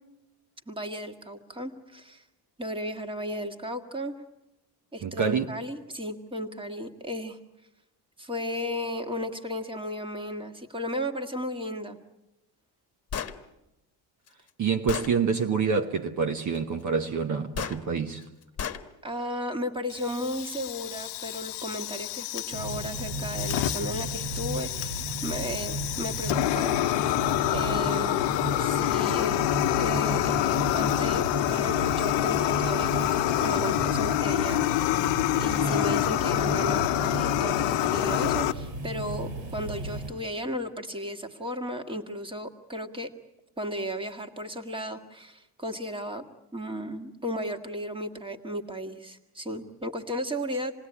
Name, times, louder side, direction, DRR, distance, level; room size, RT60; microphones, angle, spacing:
voice 1, 0.7-2.2 2.6-4.2 4.9-7.4 8.2-12.0 19.0-27.2 27.5-28.3 28.6-29.4 29.8-31.2 31.5-34.7 35.3-43.1 43.6-46.2 46.5-50.7, equal, 10° right, 1.9 m, -34 dB
voice 2, 5.0-5.5 14.6-18.3, right 5 dB, 45° right, 1.2 m, -27 dB
Gunshot gunfire, 13.1-13.4 14.3-14.4 14.9-15.1 17.5-17.8 18.6-18.8, left 8 dB, 35° left, 1.4 m, -32 dB
Fire, 19.9-38.5, left 16 dB, 90° left, 0.9 m, -27 dB
sound 1, 22.5-40.1, right 1 dB, 80° right, 6.1 m, -34 dB
27.5 x 19.5 x 9.9 m
cardioid pair, 145°, 42 cm